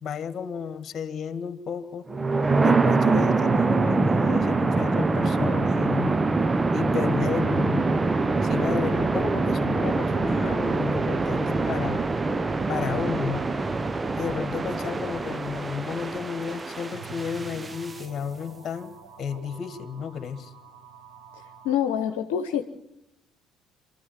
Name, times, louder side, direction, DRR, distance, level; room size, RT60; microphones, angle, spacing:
voice 1, 0.0-2.0 2.6-6.2 6.7-8.0 8.4-12.0 12.7-13.6 14.2-20.5, left 6 dB, 45° left, 11 dB, 2.0 m, -32 dB
sound 1, 2.1-18.0, right 3 dB, 25° right, 1.0 m, -24 dB
sound 2, 16.7-21.7, right 6 dB, 85° right, 3.9 m, -47 dB
voice 2, 21.6-22.6, left 9 dB, 75° left, 6 dB, 1.1 m, -25 dB
27.0 x 14.0 x 7.5 m, 0.84 s
figure-of-eight pair, 50°, 0 cm